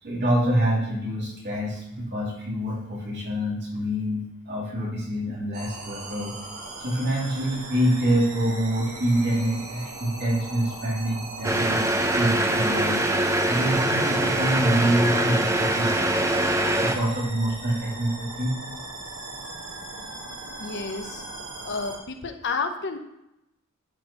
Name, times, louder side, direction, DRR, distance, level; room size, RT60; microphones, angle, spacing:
voice 1, 0.0-6.3 6.8-11.9 12.2-13.0 13.5-15.9 16.7-18.5, right 1 dB, 50° right, -4 dB, 2.8 m, -26 dB
sound 1, 5.5-22.0, right 2 dB, 75° right, 2.3 m, -39 dB
sound 2, 11.4-17.0, right 1 dB, 15° right, 0.6 m, -23 dB
voice 2, 20.6-21.3 21.6-23.0, left 4 dB, 50° left, 6 dB, 0.9 m, -31 dB
11.0 x 4.4 x 4.4 m, 0.86 s
head